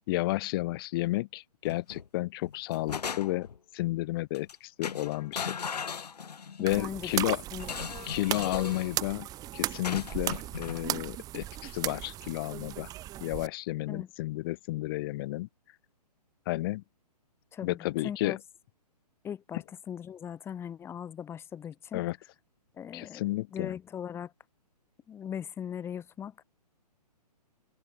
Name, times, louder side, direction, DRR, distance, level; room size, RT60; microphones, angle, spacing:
voice 1, 0.0-3.5 3.7-5.6 6.6-7.4 8.1-9.3 9.5-12.9 13.2-15.5 16.5-16.8 17.6-18.4 21.9-22.2 22.9-23.7, left 18 dB, 35° left, 1.2 m, -32 dB
sound 1, 1.6-2.1 2.5-3.6 4.3-4.5 4.8-6.7 7.6-8.9 9.8-10.8, left 6 dB, 70° left, 1.1 m, -37 dB
voice 2, 6.6-7.1 7.5-8.1 13.9-14.1 17.5-18.4 19.2-22.0 22.7-23.2 23.5-24.3 25.1-26.4, left 8 dB, 10° left, 1.1 m, -39 dB
sound 2, 6.7-13.5, right 14 dB, 15° right, 1.1 m, -36 dB
figure-of-eight pair, 130°, 21 cm